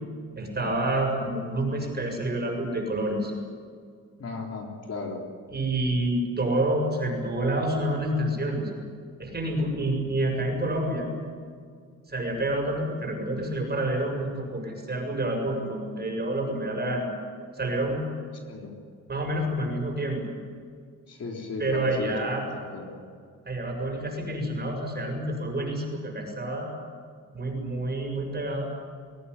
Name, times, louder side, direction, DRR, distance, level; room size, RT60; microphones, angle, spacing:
voice 1, 0.4-3.3 5.5-8.7 9.2-11.1 12.1-17.1 17.5-18.0 19.1-20.2 21.6-22.4 23.5-26.7 27.3-28.7, right 1 dB, 30° right, 1 dB, 7.1 m, -28 dB
voice 2, 4.2-5.2 18.4-18.8 21.1-23.0, left 3 dB, 45° left, 0 dB, 3.9 m, -36 dB
23.0 x 17.0 x 9.9 m, 2.1 s
wide cardioid pair, 140°, 35 cm